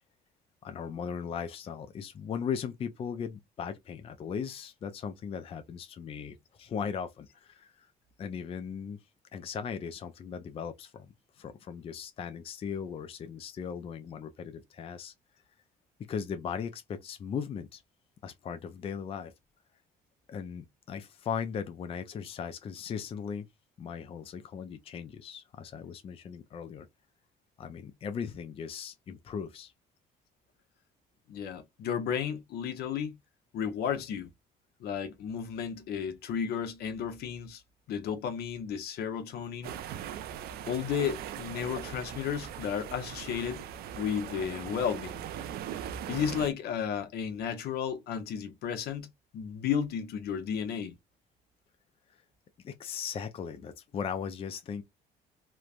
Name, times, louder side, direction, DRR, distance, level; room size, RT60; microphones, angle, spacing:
voice 1, 0.6-7.9 8.2-9.0 9.3-15.1 16.1-17.8 18.2-19.3 20.3-23.5 23.8-26.9 27.6-29.7 52.6-54.8, left 7 dB, 35° left, 0.4 m, -38 dB
voice 2, 31.3-33.1 33.5-34.3 34.8-37.6 37.9-39.7 40.7-43.6 44.0-45.2 46.1-50.9, left 8 dB, 70° left, 0.7 m, -33 dB
sound 1, 39.6-46.5, right 9 dB, 65° right, 0.4 m, -40 dB
3.1 x 2.0 x 2.3 m
cardioid pair, 110°, 17 cm